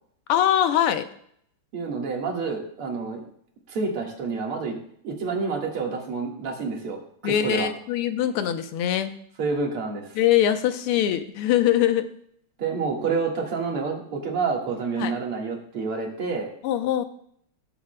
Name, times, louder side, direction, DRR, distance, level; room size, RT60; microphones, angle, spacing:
voice 1, 0.3-1.1 7.2-9.1 10.1-12.1 15.0-15.1 16.6-17.0, left 11 dB, 85° left, 9 dB, 1.7 m, -22 dB
voice 2, 1.7-3.2 3.7-4.8 5.0-7.7 9.4-10.2 12.6-16.5, right 4 dB, 80° right, 0 dB, 2.6 m, -28 dB
19.0 x 7.2 x 2.2 m, 0.67 s
omnidirectional pair, 2.4 m